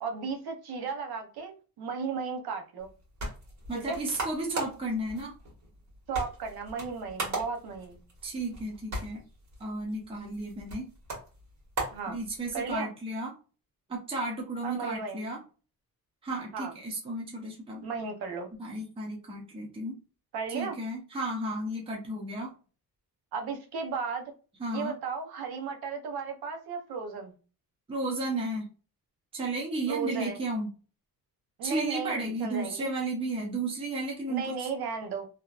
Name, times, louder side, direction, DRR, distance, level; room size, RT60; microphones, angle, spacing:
voice 1, 0.0-2.9 3.7-4.0 6.1-8.0 11.9-12.2 12.5-12.9 14.6-15.2 16.5-16.7 17.8-18.5 20.3-20.8 23.3-24.3 24.7-27.3 29.9-30.4 31.6-32.9 34.3-35.3, right 5 dB, 80° right, 4 dB, 0.8 m, -35 dB
sound 1, 2.8-12.8, right 2 dB, 45° right, 1.5 m, -39 dB
voice 2, 3.7-5.4 8.2-9.2 9.6-10.9 12.1-13.3 13.9-15.4 16.2-17.8 18.6-20.0 20.5-22.5 24.6-24.9 27.9-28.7 29.3-30.7 31.6-34.7, right 2 dB, 15° right, -2 dB, 0.7 m, -33 dB
2.9 x 2.3 x 2.4 m, 0.35 s
cardioid pair, 165°, 37 cm